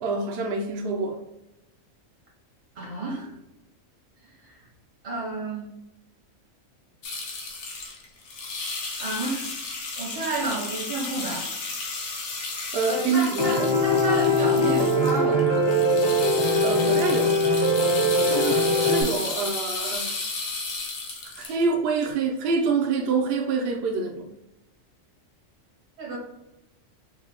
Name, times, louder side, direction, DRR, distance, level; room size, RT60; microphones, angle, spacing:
voice 1, 0.0-1.2 12.7-13.7 16.6-17.4 18.3-20.1 21.2-24.3, right 4 dB, 60° right, 0.7 m, -26 dB
voice 2, 2.7-3.3 4.4-4.6 5.0-5.7 9.0-9.5 10.0-11.5 12.8-15.7 26.0-26.2, right 2 dB, 80° right, 1.7 m, -31 dB
sound 1, 7.0-21.6 22.0-22.1, left 3 dB, 65° left, 1.0 m, -33 dB
Piano, 13.4-19.0, left 1 dB, 30° left, 0.5 m, -21 dB
4.6 x 2.2 x 3.0 m
omnidirectional pair, 1.3 m